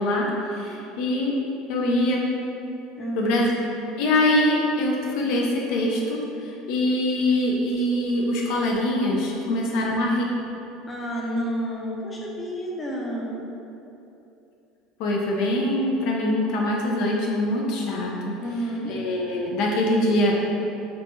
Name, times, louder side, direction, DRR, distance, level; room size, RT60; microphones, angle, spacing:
voice 1, 0.0-1.4 1.7-2.3 3.2-3.5 4.0-10.2 15.0-18.3 18.9-20.4, left 1 dB, 70° left, -2 dB, 0.4 m, -23 dB
voice 2, 3.0-3.4 9.4-9.6 10.9-13.4 18.4-18.9, right 1 dB, 20° left, -3 dB, 0.6 m, -30 dB
4.0 x 2.2 x 2.8 m, 2.8 s
supercardioid pair, 110°, 0 cm